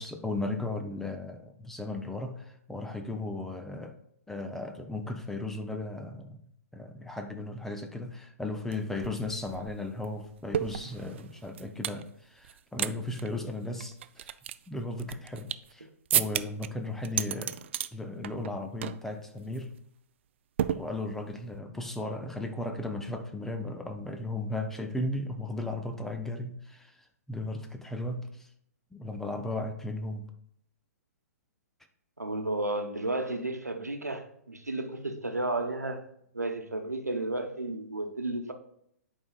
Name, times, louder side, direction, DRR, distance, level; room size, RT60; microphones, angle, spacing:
voice 1, 0.0-4.0 4.3-6.4 6.7-14.4 14.7-17.6 17.9-19.7 20.7-28.5 28.9-30.3, left 2 dB, 5° left, 0.6 m, -36 dB
sound 1, 8.7-8.8 9.0-12.0 12.4-12.9 13.2-13.3 13.8-15.7 16.1-16.7 17.0-17.9 18.2-18.5 18.8-19.1 19.4-19.6 20.6-21.3, right 10 dB, 45° right, 0.3 m, -32 dB
voice 2, 32.2-36.0 36.3-38.5, right 2 dB, 85° right, 1.0 m, -32 dB
10.5 x 4.8 x 2.4 m
figure-of-eight pair, 120°, 9 cm